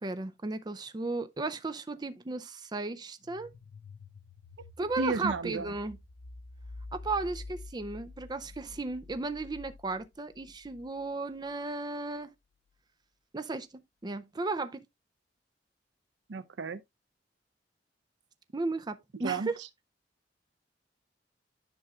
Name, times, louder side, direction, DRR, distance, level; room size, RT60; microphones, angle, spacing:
voice 1, 0.0-3.5 4.8-6.0 6.9-12.3 13.3-13.7 14.0-14.8 18.5-19.6, right 3 dB, 25° right, 0.5 m, -35 dB
sound 1, 3.2-11.9, left 2 dB, 85° left, 0.6 m, -49 dB
voice 2, 5.0-5.7 16.3-16.8 19.2-19.5, right 3 dB, 85° right, 0.6 m, -32 dB
10.0 x 6.1 x 2.3 m
head